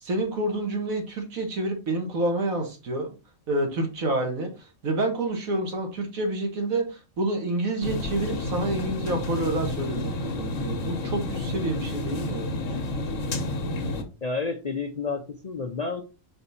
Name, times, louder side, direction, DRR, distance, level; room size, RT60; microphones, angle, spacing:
voice 1, 0.0-3.1 3.5-12.5, right 2 dB, 80° right, 3 dB, 1.9 m, -28 dB
sound 1, 7.8-14.0, left 2 dB, 65° left, 1.4 m, -30 dB
voice 2, 14.2-16.0, left 4 dB, 45° left, 4 dB, 0.5 m, -30 dB
5.4 x 4.4 x 4.1 m, 0.31 s
omnidirectional pair, 1.4 m